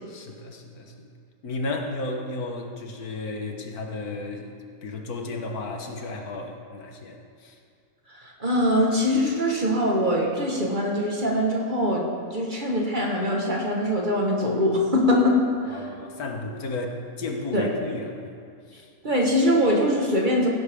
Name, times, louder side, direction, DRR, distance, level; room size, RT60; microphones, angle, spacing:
voice 1, 0.1-1.1 1.4-4.5 4.8-7.6 15.7-18.4 18.7-18.9, left 2 dB, 75° left, 3 dB, 1.6 m, -33 dB
voice 2, 8.1-15.8 17.5-17.7 19.0-20.5, left 1 dB, 35° right, -1 dB, 1.5 m, -23 dB
16.0 x 11.0 x 3.6 m, 2.3 s
omnidirectional pair, 1.6 m